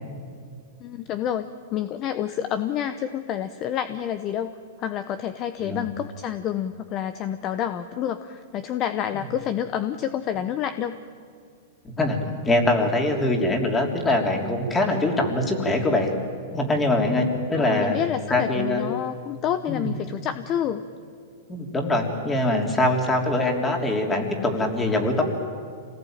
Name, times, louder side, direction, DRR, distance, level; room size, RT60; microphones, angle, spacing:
voice 1, 0.8-4.5 4.8-11.0 17.5-20.9, left 10 dB, 35° left, 11 dB, 0.9 m, -28 dB
voice 2, 11.8-16.1 16.5-18.0 18.3-18.9 19.7-19.9 21.5-25.2, left 2 dB, 15° left, 3 dB, 3.3 m, -23 dB
26.5 x 18.5 x 9.0 m, 2.3 s
hypercardioid pair, 140°, 0 cm